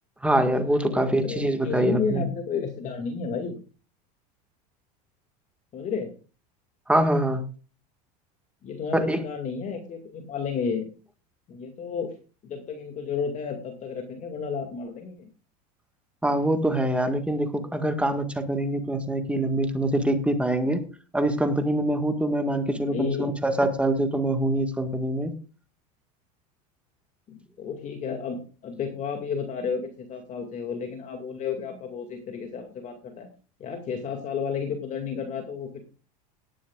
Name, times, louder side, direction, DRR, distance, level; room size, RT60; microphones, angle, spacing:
voice 1, 0.2-2.3 6.9-7.4 8.9-9.2 16.2-20.9 21.1-25.3, right 1 dB, 5° right, 6 dB, 1.7 m, -24 dB
voice 2, 0.8-3.6 5.7-6.1 8.6-10.9 11.5-12.1 12.4-15.3 22.9-23.3 27.3-33.3 33.6-35.9, left 6 dB, 35° left, 4 dB, 2.3 m, -32 dB
17.5 x 11.5 x 2.4 m, 0.35 s
supercardioid pair, 115°, 21 cm